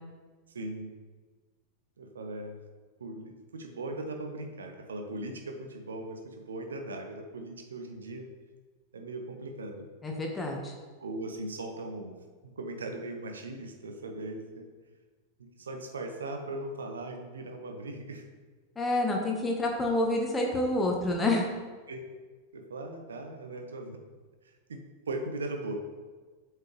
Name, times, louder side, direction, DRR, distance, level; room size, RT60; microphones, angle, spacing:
voice 1, 0.5-0.9 2.0-2.6 3.0-8.3 8.9-9.9 11.0-12.1 12.4-14.7 15.6-18.2 21.9-22.2 22.5-24.0 24.4-24.8 25.1-25.8, right 2 dB, 70° right, 5 dB, 0.7 m, -39 dB
voice 2, 10.0-10.7 18.8-21.5, left 2 dB, 15° left, 0 dB, 1.2 m, -28 dB
8.1 x 4.7 x 3.2 m, 1.4 s
figure-of-eight pair, 90°, 0 cm